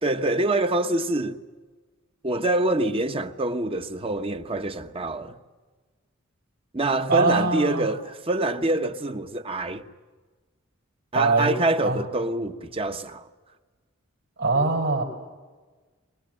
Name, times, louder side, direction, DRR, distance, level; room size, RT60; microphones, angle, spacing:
voice 1, 0.0-1.4 2.2-5.4 6.7-9.8 11.1-13.2, right 2 dB, 30° right, 1.1 m, -25 dB
voice 2, 7.1-7.9 11.1-11.5 11.8-12.0 14.4-15.0, right 3 dB, 65° right, 4.7 m, -22 dB
23.5 x 22.0 x 9.0 m
head